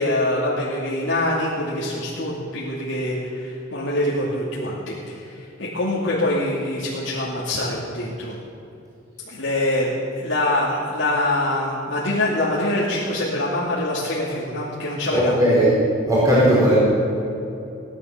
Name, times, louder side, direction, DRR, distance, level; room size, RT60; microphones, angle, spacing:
voice 1, 0.0-8.4 9.3-15.3, left 1 dB, 75° left, -6 dB, 2.6 m, -24 dB
voice 2, 15.1-15.7 16.0-16.8, right 1 dB, 20° right, -8 dB, 4.6 m, -17 dB
18.0 x 11.0 x 7.2 m, 2.8 s
head